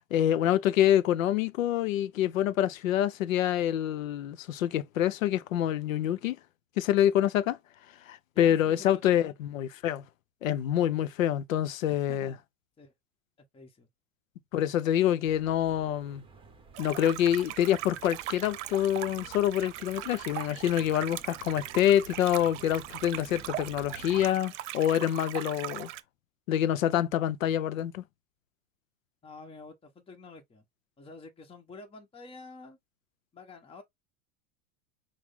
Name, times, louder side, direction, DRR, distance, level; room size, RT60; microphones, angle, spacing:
voice 1, 0.1-6.4 6.8-7.6 8.1-10.0 10.4-12.3 14.5-16.2 16.8-25.9 26.5-28.0, left 11 dB, 90° left, 0.7 m, -26 dB
voice 2, 8.3-9.0 11.9-12.4 12.8-12.9 13.5-13.9 29.2-30.6 31.0-32.8 33.3-33.8, left 3 dB, 15° left, 1.2 m, -48 dB
sound 1, 15.2-24.3, right 3 dB, 15° right, 1.2 m, -53 dB
sound 2, 16.7-26.0, right 15 dB, 65° right, 0.8 m, -40 dB
6.1 x 2.2 x 3.6 m
supercardioid pair, 125°, 39 cm